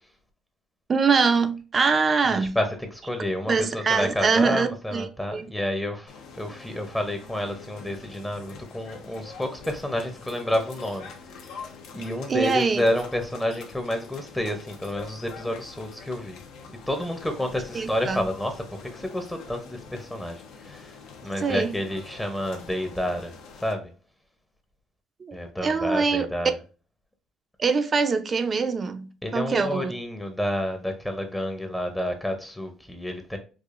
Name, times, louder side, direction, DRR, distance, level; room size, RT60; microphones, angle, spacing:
voice 1, 0.9-2.6 3.5-5.5 12.3-12.8 17.7-18.2 21.4-21.7 25.3-25.4 25.6-26.3 27.6-29.1 29.3-29.9, right 5 dB, 30° right, 0.4 m, -23 dB
voice 2, 2.3-11.1 11.5-11.7 11.9-16.4 16.9-21.0 21.2-23.9 25.3-26.6 29.2-33.4, left 1 dB, 5° left, 0.6 m, -30 dB
sound 1, 6.1-23.7, left 5 dB, 85° left, 0.7 m, -45 dB
4.7 x 2.4 x 2.4 m
cardioid pair, 115°, 0 cm